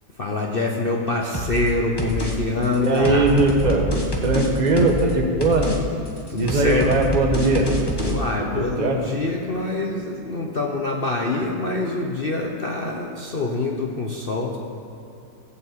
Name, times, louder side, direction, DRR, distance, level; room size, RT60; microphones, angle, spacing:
voice 1, 0.2-3.3 6.3-6.9 8.0-14.6, left 2 dB, 45° left, 0 dB, 0.7 m, -25 dB
sound 1, 1.3-1.7 2.0-2.3 2.6-5.1 5.4-5.8 6.1-8.1, equal, 15° left, 1.0 m, -26 dB
voice 2, 2.8-3.9 4.2-5.7 6.4-7.7 8.4-9.0, right 2 dB, 25° right, 1 dB, 1.2 m, -20 dB
16.0 x 5.7 x 8.1 m, 2.6 s
omnidirectional pair, 2.1 m